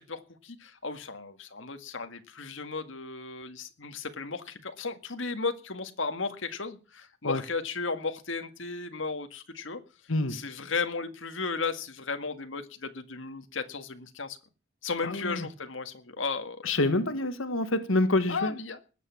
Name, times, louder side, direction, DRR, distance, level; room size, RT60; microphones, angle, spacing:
voice 1, 0.0-9.8 10.3-14.4 14.8-16.6 18.3-18.8, left 4 dB, 70° left, 1.8 m, -35 dB
voice 2, 15.0-15.5 16.6-18.5, left 2 dB, 90° left, 1.6 m, -27 dB
20.5 x 8.5 x 7.2 m
head